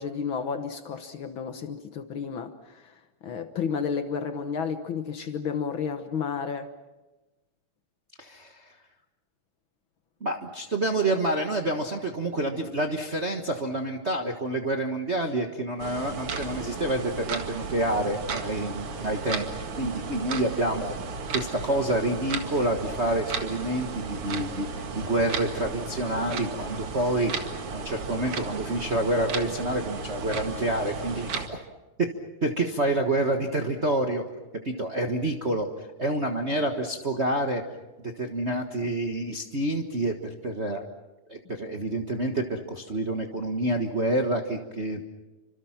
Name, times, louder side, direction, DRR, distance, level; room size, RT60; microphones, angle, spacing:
voice 1, 0.0-2.9 3.2-6.7, left 6 dB, 75° left, 1.1 m, -32 dB
voice 2, 8.2-8.7 10.2-21.0 21.3-31.6 32.4-34.2 34.6-37.6 38.0-40.8 41.3-45.0, right 1 dB, 70° right, 0.6 m, -28 dB
sound 1, 15.8-31.5, right 4 dB, 45° right, 2.5 m, -34 dB
29.5 x 26.0 x 5.9 m
omnidirectional pair, 3.9 m